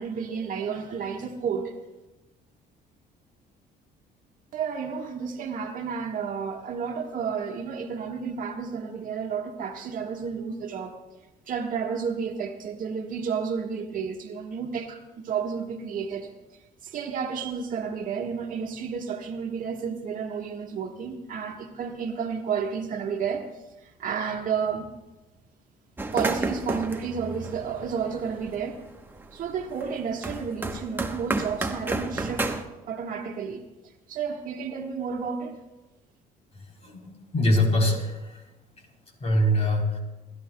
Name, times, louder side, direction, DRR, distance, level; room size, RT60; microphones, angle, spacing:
voice 1, 0.0-1.7 4.5-11.0 11.5-16.3 16.8-23.5 23.8-24.9 26.1-28.8 29.3-32.5 32.8-33.6 34.1-35.6, right 6 dB, 55° right, 3 dB, 1.5 m, -31 dB
sound 1, 26.0-28.6 29.0-32.6, right 2 dB, 10° right, 1.0 m, -31 dB
voice 2, 36.8-38.4 39.2-40.0, left 1 dB, 40° left, 2 dB, 3.6 m, -23 dB
28.0 x 13.0 x 2.3 m, 1.1 s
cardioid pair, 110°, 17 cm